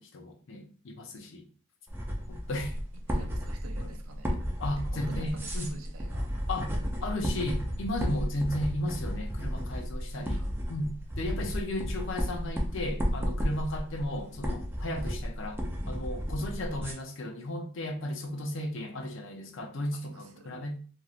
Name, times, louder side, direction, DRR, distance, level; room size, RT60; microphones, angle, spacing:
voice 1, 0.0-1.5 2.3-2.7 3.8-3.9 4.6-5.8 6.5-6.7 7.0-10.4 10.7-20.8, left 1 dB, 65° left, 0.5 m, -35 dB
sound 1, 1.9-16.9, equal, 10° right, 0.4 m, -33 dB
voice 2, 3.1-4.4 4.8-6.3 10.0-10.5 20.0-20.6, right 2 dB, 85° right, 0.6 m, -48 dB
2.9 x 2.6 x 2.4 m
head